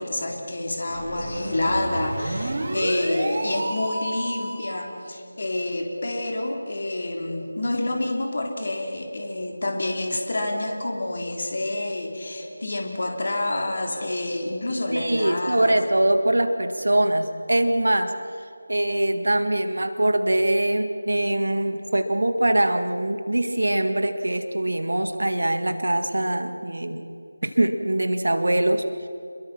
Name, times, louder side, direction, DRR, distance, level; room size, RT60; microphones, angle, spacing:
voice 1, 0.0-15.8, left 1 dB, 45° left, 2 dB, 3.5 m, -28 dB
sound 1, 0.8-4.7, right 1 dB, 40° right, 3.6 m, -30 dB
voice 2, 14.9-18.1 18.7-27.1 27.4-28.8, right 1 dB, 65° right, 7 dB, 1.9 m, -23 dB
28.0 x 22.0 x 6.0 m, 2.7 s
figure-of-eight pair, 165°, 0 cm